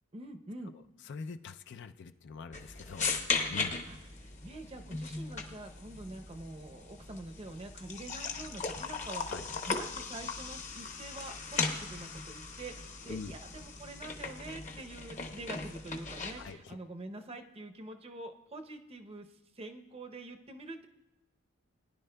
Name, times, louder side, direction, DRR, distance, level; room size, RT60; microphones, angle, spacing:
voice 1, 0.1-0.8 3.9-9.3 9.7-19.3 19.6-20.9, right 2 dB, 30° right, 5 dB, 0.7 m, -46 dB
voice 2, 1.1-3.1 3.5-3.8 9.3-9.5 13.1-13.3 16.4-16.8, left 5 dB, 60° left, 9 dB, 0.4 m, -43 dB
sound 1, 2.5-16.5, left 4 dB, 35° left, 0.9 m, -38 dB
20.0 x 10.5 x 2.2 m, 1.0 s
head